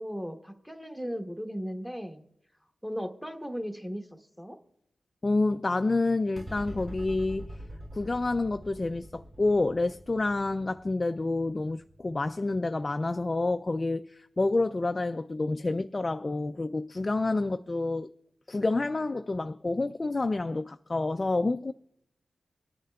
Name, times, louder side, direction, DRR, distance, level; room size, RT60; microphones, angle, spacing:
voice 1, 0.0-2.2 2.8-4.1 4.4-4.6, equal, ahead, 1.0 m, -36 dB
voice 2, 5.2-7.5 7.9-18.1 18.5-21.7, left 2 dB, 35° left, 0.3 m, -28 dB
sound 1, 6.4-13.0, equal, 40° right, 2.2 m, -45 dB
24.0 x 9.1 x 2.3 m
cardioid pair, 60°, 0 cm